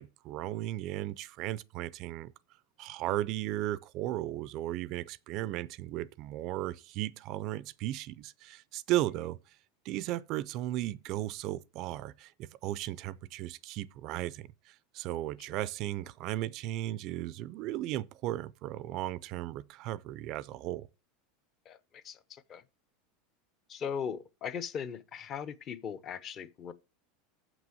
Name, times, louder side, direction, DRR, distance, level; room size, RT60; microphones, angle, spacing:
voice 1, 0.0-2.3 2.8-9.4 9.8-20.9, right 14 dB, 40° right, 0.4 m, -36 dB
voice 2, 21.7-22.6 23.7-26.7, left 7 dB, 30° left, 0.6 m, -39 dB
7.6 x 6.0 x 7.5 m
supercardioid pair, 165°, 0 cm